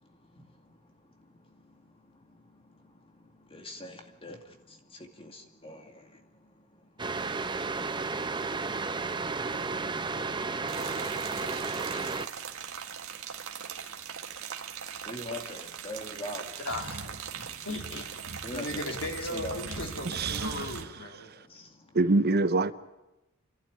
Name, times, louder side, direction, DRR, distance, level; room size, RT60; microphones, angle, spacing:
voice 1, 3.5-4.4 5.2-6.0 15.0-17.0 18.4-18.9 19.2-19.9 21.5-21.6, left 1 dB, 25° left, 2.3 m, -41 dB
sound 1, 7.0-12.3, right 4 dB, 20° right, 0.8 m, -32 dB
sound 2, 10.7-20.8, right 6 dB, 80° right, 1.8 m, -40 dB
voice 2, 16.6-21.3, left 1 dB, 65° left, 3.1 m, -38 dB
voice 3, 20.0-20.7 21.9-22.7, right 2 dB, 50° right, 0.8 m, -25 dB
29.5 x 11.5 x 9.8 m
head